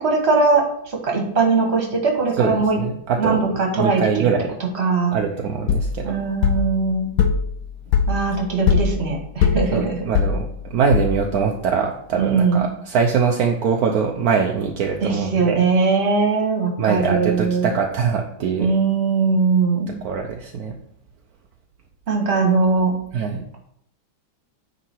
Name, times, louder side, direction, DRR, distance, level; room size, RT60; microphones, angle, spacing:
voice 1, 0.0-2.8 3.2-4.0 4.8-5.2 6.0-7.1 8.1-10.0 12.2-12.7 15.0-17.7 18.6-19.9 22.1-22.9, right 4 dB, 35° right, 1 dB, 1.6 m, -20 dB
voice 2, 2.4-3.4 3.8-4.5 5.1-6.2 9.7-15.6 16.8-18.7 20.0-20.8 23.1-23.4, right 6 dB, 65° right, 2 dB, 0.9 m, -22 dB
sound 1, 5.7-11.5, left 6 dB, 80° left, 1.5 m, -22 dB
9.2 x 3.9 x 4.5 m, 0.70 s
omnidirectional pair, 2.1 m